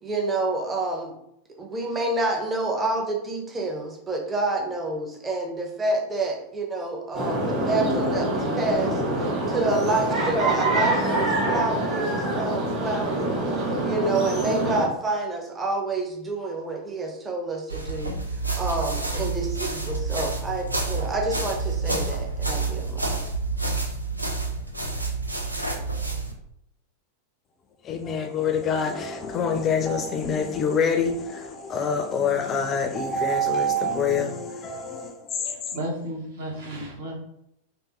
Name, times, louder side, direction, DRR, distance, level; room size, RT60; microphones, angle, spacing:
voice 1, 0.0-1.1 1.6-9.0 9.5-13.3 13.8-18.1 18.6-23.3, right 2 dB, 15° right, 0.7 m, -28 dB
sound 1, 7.1-14.9, right 1 dB, 30° right, 1.5 m, -25 dB
sound 2, 17.7-26.3, right 3 dB, 85° right, 0.5 m, -28 dB
voice 2, 27.8-35.7, left 4 dB, 25° left, 0.4 m, -26 dB
voice 3, 35.4-37.1, right 1 dB, 60° right, 1.1 m, -33 dB
3.5 x 2.7 x 2.9 m
figure-of-eight pair, 90°, 0 cm